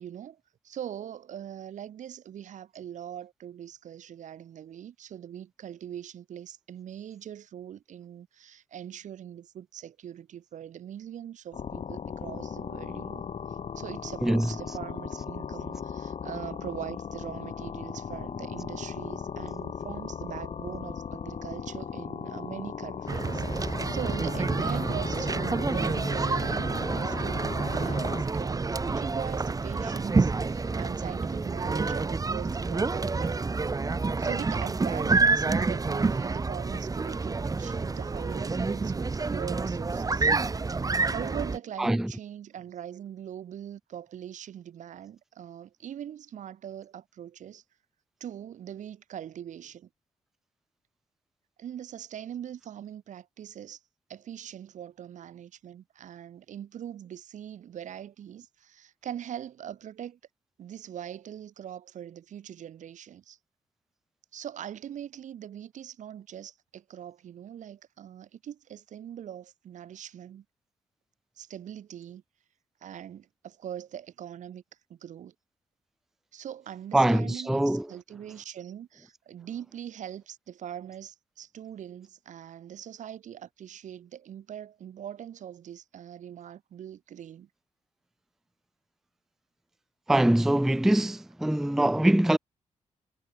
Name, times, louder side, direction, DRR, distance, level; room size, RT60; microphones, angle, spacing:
voice 1, 0.0-13.3 13.8-26.7 27.0-33.5 34.2-40.3 41.1-47.6 48.2-49.9 51.6-53.8 54.1-60.2 60.6-63.4 64.3-70.4 71.4-72.2 72.8-74.6 74.9-75.3 76.3-87.5, right 10 dB, 80° right, 4.0 m, -42 dB
sound 1, 11.5-28.2, left 7 dB, 55° left, 3.0 m, -37 dB
sound 2, 23.1-41.6, right 4 dB, 30° right, 1.2 m, -28 dB
voice 2, 41.8-42.1 76.9-77.8 90.1-92.4, right 1 dB, 5° right, 0.4 m, -23 dB
cardioid pair, 80°, 12 cm